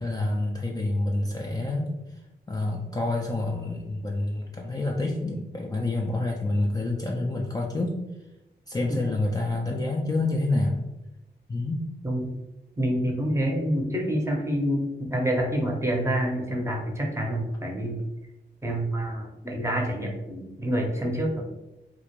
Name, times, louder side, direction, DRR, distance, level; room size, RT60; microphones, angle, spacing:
voice 1, 0.0-1.9 2.5-8.0 8.7-10.9 11.5-11.9, left 2 dB, 20° left, -1 dB, 0.3 m, -28 dB
voice 2, 12.0-12.4 12.8-18.0 18.6-21.4, equal, 15° right, 0 dB, 0.6 m, -27 dB
2.4 x 2.1 x 2.9 m, 0.97 s
cardioid pair, 65°, 19 cm